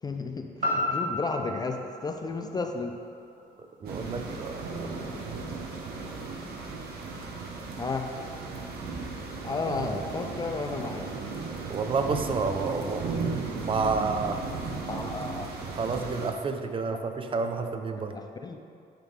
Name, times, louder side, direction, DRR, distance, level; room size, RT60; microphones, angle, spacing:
voice 1, 0.0-3.0 7.8-8.1 9.4-11.1 14.9-15.5 18.0-18.6, left 3 dB, 25° left, 5 dB, 0.3 m, -33 dB
sound 1, 0.6-4.7 5.1-5.2, left 1 dB, 50° right, 1.4 m, -34 dB
voice 2, 3.8-5.0 11.7-13.1 13.6-14.4 15.7-18.1, right 4 dB, 30° right, 6 dB, 0.5 m, -30 dB
sound 2, 3.8-16.3, right 4 dB, 70° right, 0.9 m, -36 dB
9.0 x 3.5 x 4.6 m, 2.4 s
cardioid pair, 125°, 17 cm